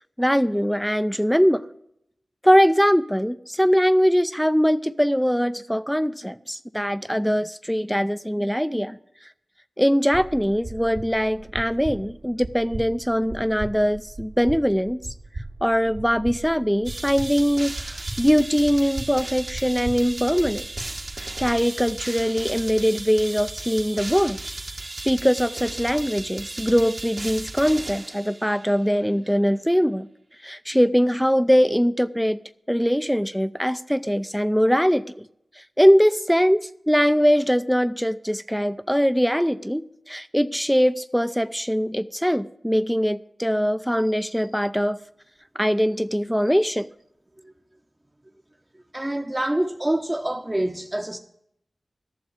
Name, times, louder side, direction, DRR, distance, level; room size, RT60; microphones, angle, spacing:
voice 1, 0.2-1.6 2.4-9.0 9.8-15.0 15.6-20.9 21.2-24.4 25.1-30.1 30.4-32.4 32.7-35.2 35.6-45.0 45.6-46.9, equal, ahead, 0.5 m, -22 dB
sound 1, 10.1-21.6, right 2 dB, 80° right, 2.3 m, -38 dB
sound 2, 16.8-28.7, right 2 dB, 50° right, 1.3 m, -36 dB
voice 2, 48.9-51.2, right 1 dB, 20° right, 0.9 m, -26 dB
12.5 x 7.1 x 8.5 m
wide cardioid pair, 60°, 0 cm